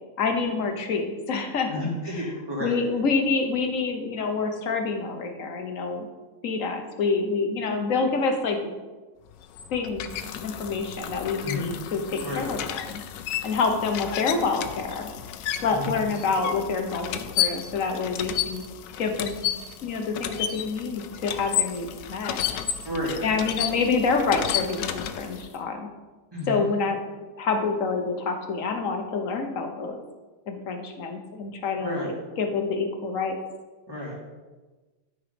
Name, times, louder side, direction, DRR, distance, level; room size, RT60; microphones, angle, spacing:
voice 1, 0.2-2.3 2.6-6.1 6.4-8.6 9.7-10.1 10.4-13.0 13.4-15.1 15.6-18.6 19.0-19.4 19.8-22.5 23.2-25.9 26.5-30.0 30.5-33.3, left 4 dB, 55° left, 5 dB, 1.3 m, -27 dB
voice 2, 1.7-2.7 11.4-11.7 12.2-12.5 15.7-16.0 22.8-23.2 26.3-26.6 31.8-32.1 33.9-34.1, left 1 dB, 15° right, -5 dB, 2.6 m, -31 dB
sound 1, 9.3-25.6, left 10 dB, 90° left, 1.3 m, -32 dB
12.0 x 5.0 x 5.2 m, 1.3 s
omnidirectional pair, 1.9 m